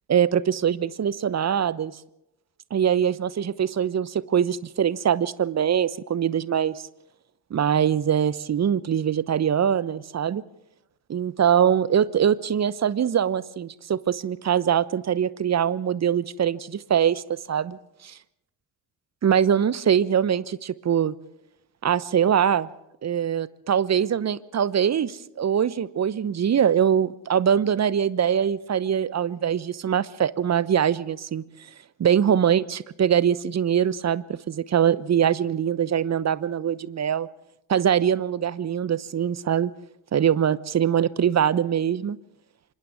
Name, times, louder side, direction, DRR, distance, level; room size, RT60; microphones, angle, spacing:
voice 1, 0.1-2.0 2.7-6.8 7.5-10.4 11.1-17.8 19.2-21.1 21.8-22.7 23.0-31.4 32.0-37.3 37.7-39.7 40.1-42.2, right 8 dB, 35° right, 19 dB, 1.0 m, -23 dB
28.0 x 26.0 x 3.6 m, 0.86 s
figure-of-eight pair, 45°, 48 cm